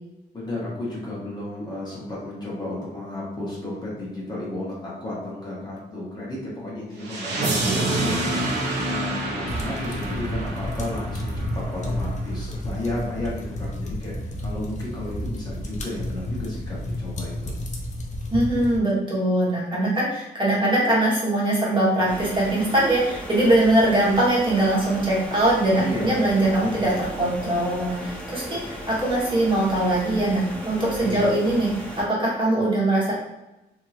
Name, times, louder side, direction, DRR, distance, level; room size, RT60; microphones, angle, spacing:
voice 1, 0.3-17.5 25.8-27.1 31.0-31.4, left 1 dB, 25° left, -6 dB, 1.1 m, -33 dB
sound 1, 7.0-12.0, right 2 dB, 75° right, 0.7 m, -27 dB
sound 2, 9.5-18.8, left 1 dB, 45° left, 0.5 m, -31 dB
voice 2, 18.3-31.7 32.0-33.1, right 1 dB, 30° right, -7 dB, 1.2 m, -22 dB
sound 3, 22.1-32.0, equal, 5° left, 0.7 m, -36 dB
3.0 x 2.7 x 2.4 m, 0.98 s
cardioid pair, 105°, 17 cm